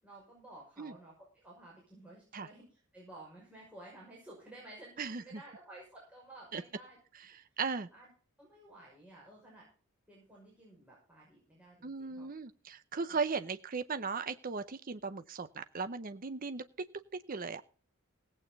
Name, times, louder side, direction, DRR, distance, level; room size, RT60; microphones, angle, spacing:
voice 1, 0.0-7.0 7.9-8.1 8.4-9.7 10.1-12.3 13.1-13.2, right 1 dB, 5° right, -5 dB, 5.8 m, -54 dB
voice 2, 7.6-7.9 11.8-16.6 17.3-17.6, right 5 dB, 40° right, 11 dB, 0.6 m, -37 dB
17.0 x 8.9 x 4.0 m, 0.41 s
head